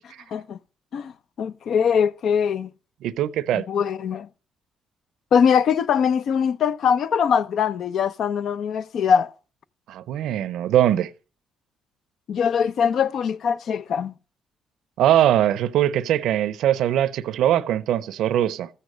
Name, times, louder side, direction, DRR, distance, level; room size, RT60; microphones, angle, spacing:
voice 1, 1.4-2.7 3.5-4.3 5.3-9.3 12.3-14.1, left 7 dB, 65° left, 0.6 m, -22 dB
voice 2, 3.0-3.6 9.9-11.1 15.0-18.7, right 11 dB, 80° right, 0.5 m, -21 dB
14.0 x 8.2 x 5.2 m
cardioid pair, 90°, 0 cm